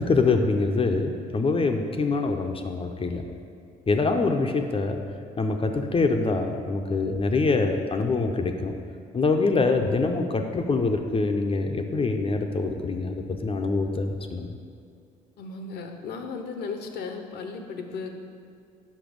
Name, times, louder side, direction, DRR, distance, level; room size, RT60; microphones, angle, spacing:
voice 1, 0.0-3.2 3.9-5.0 5.4-8.7 9.1-14.6, left 3 dB, 30° left, 4 dB, 0.6 m, -25 dB
voice 2, 15.4-18.1, left 4 dB, 65° left, 5 dB, 0.7 m, -35 dB
5.4 x 5.2 x 5.2 m, 2.4 s
supercardioid pair, 60°, 18 cm